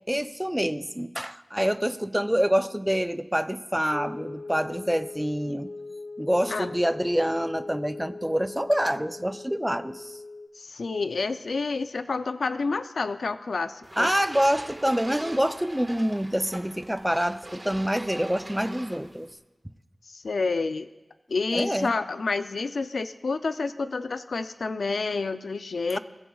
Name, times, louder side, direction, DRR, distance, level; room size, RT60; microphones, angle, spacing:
voice 1, 0.1-5.7 6.2-10.2 14.0-19.3 21.5-21.9 25.9-26.0, equal, 5° right, 11 dB, 0.5 m, -26 dB
sound 1, 3.9-10.5, left 3 dB, 35° left, 0.6 m, -40 dB
voice 2, 10.5-14.1 20.1-20.9 21.3-26.0, left 4 dB, 90° left, 10 dB, 0.4 m, -29 dB
sound 2, 13.8-19.3, right 1 dB, 30° right, 1.5 m, -42 dB
22.5 x 15.5 x 2.3 m, 1.1 s
wide cardioid pair, 85°, 0 cm